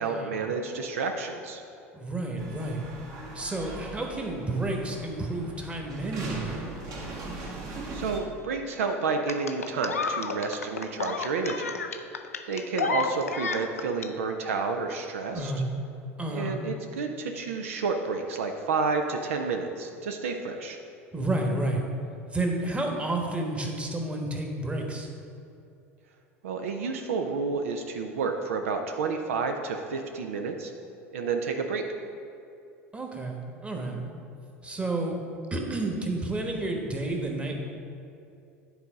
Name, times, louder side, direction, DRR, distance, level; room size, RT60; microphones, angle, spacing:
voice 1, 0.0-1.6 7.9-11.8 12.5-15.5 16.3-20.8 26.4-30.7 31.1-31.8, right 4 dB, 70° right, 4 dB, 0.5 m, -30 dB
voice 2, 1.9-2.9 3.3-6.6 15.3-15.6 16.2-16.5 21.1-21.8 22.3-25.1 32.9-34.0 34.6-35.2 35.5-37.6, right 2 dB, 15° right, 2 dB, 1.2 m, -30 dB
sound 1, 2.4-8.2, right 2 dB, 50° right, 1.5 m, -40 dB
sound 2, 9.3-14.1 15.3-15.4, left 5 dB, 85° left, 0.4 m, -31 dB
10.5 x 4.1 x 5.1 m, 2.7 s
figure-of-eight pair, 75°, 8 cm